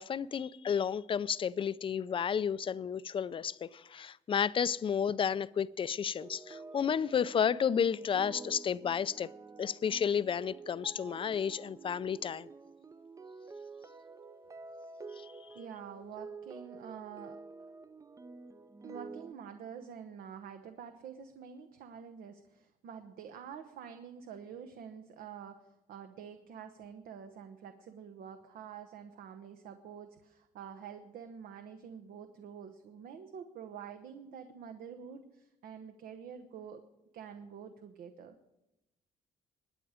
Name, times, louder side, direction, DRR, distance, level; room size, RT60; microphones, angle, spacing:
voice 1, 0.0-9.3 9.6-12.5 15.2-15.3, left 7 dB, 35° left, 0.4 m, -32 dB
sound 1, 6.2-19.3, right 4 dB, 20° right, 0.5 m, -49 dB
voice 2, 15.5-17.4 17.7-17.8 18.8-36.8 37.1-38.3, right 7 dB, 75° right, 1.0 m, -47 dB
21.0 x 9.0 x 5.0 m
cardioid pair, 105°, 15 cm